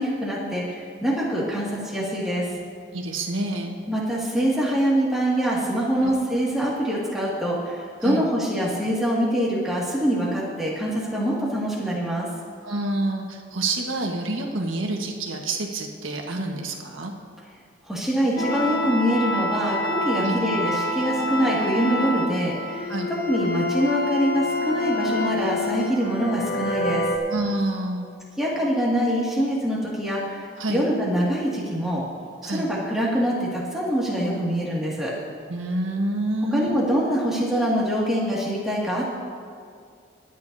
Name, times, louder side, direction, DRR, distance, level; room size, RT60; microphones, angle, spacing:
voice 1, 0.0-2.5 3.9-12.3 17.9-22.9 23.2-27.0 28.4-32.0 32.4-35.1 36.5-39.1, equal, ahead, -6 dB, 2.1 m, -24 dB
voice 2, 2.9-3.8 6.0-6.1 8.0-8.3 12.6-17.1 20.2-20.4 22.9-23.1 27.3-28.1 30.6-30.8 32.4-32.7 35.5-36.8, right 2 dB, 85° right, 1 dB, 1.4 m, -27 dB
sound 1, 18.4-27.2, left 1 dB, 50° left, 1.0 m, -27 dB
24.0 x 9.3 x 2.7 m, 2.3 s
head